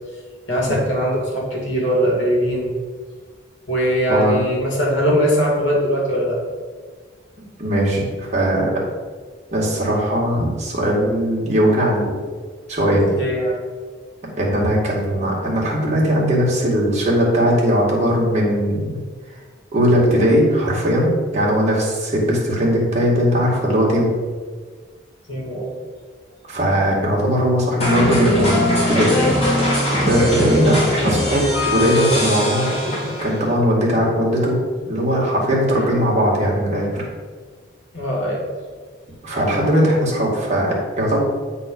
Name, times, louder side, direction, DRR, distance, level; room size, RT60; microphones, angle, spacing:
voice 1, 0.5-2.7 3.7-6.4 13.1-13.6 25.3-25.7 35.8-35.9 37.9-38.5, equal, 70° left, -3 dB, 2.2 m, -20 dB
voice 2, 4.1-4.4 7.6-8.7 9.5-12.1 12.7-13.0 14.4-19.0 19.7-24.1 26.5-29.1 30.0-32.9 33.2-34.6 34.8-37.0 39.2-41.2, equal, 35° right, -5 dB, 2.0 m, -19 dB
sound 1, 27.8-33.5, left 1 dB, 35° left, 2.4 m, -20 dB
8.0 x 4.1 x 5.3 m, 1.5 s
head